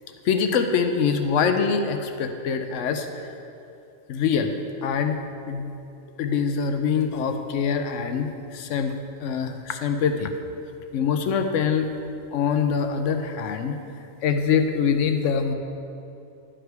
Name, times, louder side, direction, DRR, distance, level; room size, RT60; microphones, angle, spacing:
voice 1, 0.2-3.3 4.1-4.5 4.8-5.2 5.5-5.7 6.2-10.3 10.9-11.9 12.3-13.8 14.2-15.5, left 6 dB, 70° left, 7 dB, 0.9 m, -24 dB
11.0 x 5.0 x 4.6 m, 2.7 s
omnidirectional pair, 1.4 m